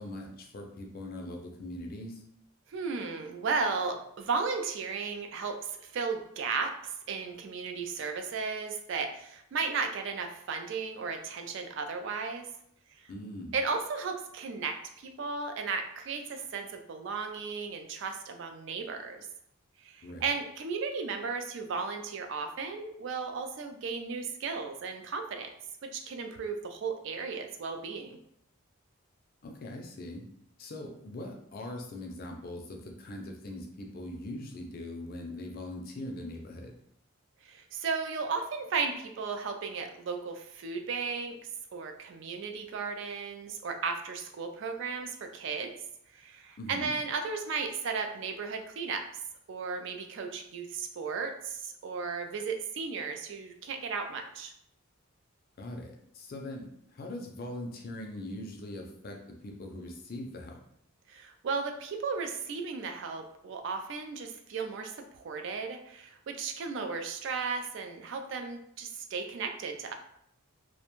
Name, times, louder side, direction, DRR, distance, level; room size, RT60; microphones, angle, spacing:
voice 1, 0.0-2.2 13.1-13.5 20.0-20.2 29.4-30.3 30.6-36.7 46.6-46.9 55.6-60.6, left 1 dB, 45° left, 2 dB, 0.4 m, -41 dB
voice 2, 2.7-6.7 7.1-12.5 13.5-19.3 19.8-25.5 25.8-28.2 37.4-41.4 41.7-45.7 46.1-49.0 49.5-54.5 61.1-69.9, right 4 dB, 55° right, 5 dB, 0.3 m, -35 dB
2.4 x 2.1 x 2.9 m, 0.73 s
head